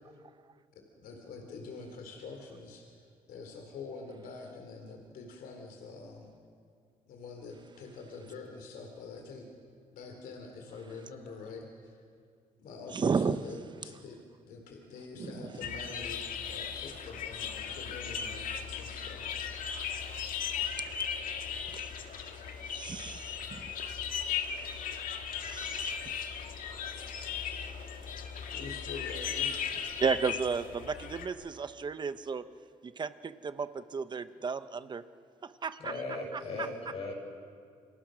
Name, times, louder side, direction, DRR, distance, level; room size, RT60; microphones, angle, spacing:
voice 1, 0.7-6.3 7.0-9.5 9.9-12.0 12.6-14.2 14.4-16.2 16.5-19.2 28.5-29.6 36.4-36.7, left 4 dB, 90° left, 3 dB, 3.3 m, -45 dB
voice 2, 12.9-13.4 15.2-15.5 20.6-25.1 25.4-28.5 30.0-32.4 32.8-35.0 35.4-36.0 36.3-36.7, right 5 dB, 30° right, 12 dB, 0.9 m, -36 dB
sound 1, 15.6-31.3, left 7 dB, 70° left, 2.0 m, -37 dB
voice 3, 35.8-37.1, left 2 dB, 45° left, -2 dB, 7.7 m, -38 dB
28.5 x 26.5 x 6.3 m, 2.3 s
cardioid pair, 135°, 15 cm